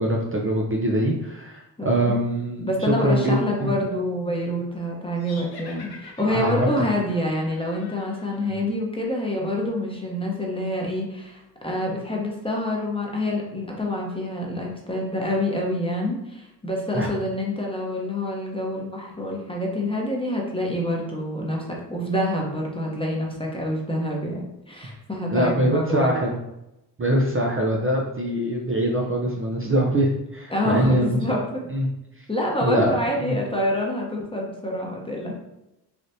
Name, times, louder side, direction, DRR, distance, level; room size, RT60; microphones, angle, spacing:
voice 1, 0.0-2.7 3.0-3.7 6.3-6.8 16.9-17.1 25.3-26.4 27.0-31.4 31.7-31.9 32.6-33.4, right 1 dB, 30° right, -1 dB, 0.6 m, -23 dB
voice 2, 1.8-2.2 2.6-26.1 30.5-31.6 32.3-35.4, left 1 dB, 15° left, -2 dB, 0.9 m, -27 dB
sound 1, 5.2-8.6, left 4 dB, 60° left, 0.8 m, -45 dB
3.4 x 2.4 x 2.7 m, 0.89 s
supercardioid pair, 45°, 42 cm